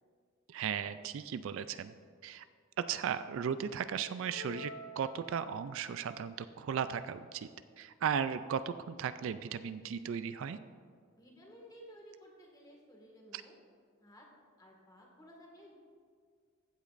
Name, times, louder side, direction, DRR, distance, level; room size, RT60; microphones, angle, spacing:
voice 1, 0.5-1.9 2.2-2.4 2.8-7.5 7.8-10.6 13.3-13.4, right 7 dB, 65° right, 13 dB, 0.3 m, -36 dB
sound 1, 4.3-5.9, left 3 dB, 90° left, 1.1 m, -48 dB
voice 2, 11.1-13.5 14.0-14.3 14.6-15.7, equal, 20° left, -1 dB, 1.8 m, -55 dB
15.0 x 8.2 x 2.5 m, 2.1 s
head